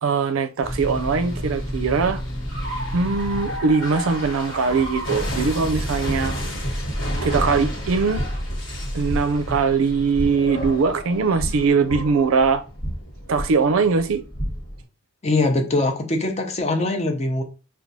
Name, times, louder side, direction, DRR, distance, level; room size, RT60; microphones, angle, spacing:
voice 1, 0.0-2.2 2.9-6.4 7.2-8.2 8.9-12.6 13.3-14.2, right 5 dB, 90° right, 0.5 m, -21 dB
sound 1, 0.6-14.8, equal, 60° left, 1.4 m, -29 dB
voice 2, 15.2-17.4, left 2 dB, 30° left, 0.6 m, -22 dB
5.8 x 2.3 x 2.7 m
head